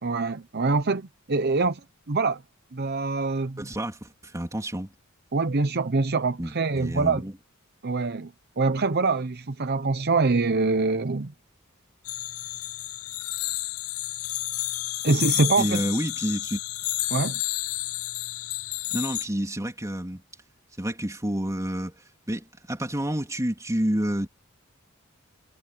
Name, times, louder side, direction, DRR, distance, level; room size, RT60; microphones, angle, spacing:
voice 1, 0.0-1.8 2.1-2.4 2.7-3.6 5.3-7.2 7.8-11.3 15.0-15.8 17.1-17.4, right 3 dB, 50° right, 0.8 m, -24 dB
voice 2, 3.6-4.9 6.4-7.3 15.6-16.6 18.9-20.2 20.8-24.3, equal, 15° right, 3.5 m, -29 dB
sound 1, 12.0-19.3, left 17 dB, 85° left, 0.6 m, -31 dB
head